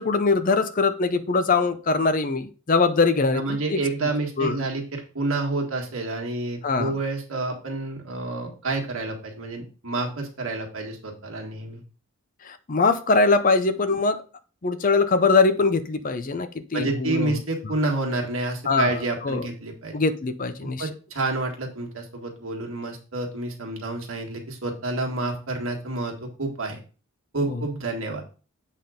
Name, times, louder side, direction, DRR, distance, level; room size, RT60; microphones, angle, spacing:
voice 1, 0.0-3.8 4.4-4.6 6.6-6.9 12.4-14.2 14.6-17.3 18.7-18.9 19.2-19.5 19.9-20.9 27.5-27.6, left 4 dB, 40° left, 11 dB, 0.5 m, -22 dB
voice 2, 3.3-11.8 16.7-20.0 20.8-26.8 27.3-28.2, right 2 dB, 65° right, 1 dB, 1.8 m, -29 dB
8.0 x 3.6 x 5.0 m, 0.36 s
head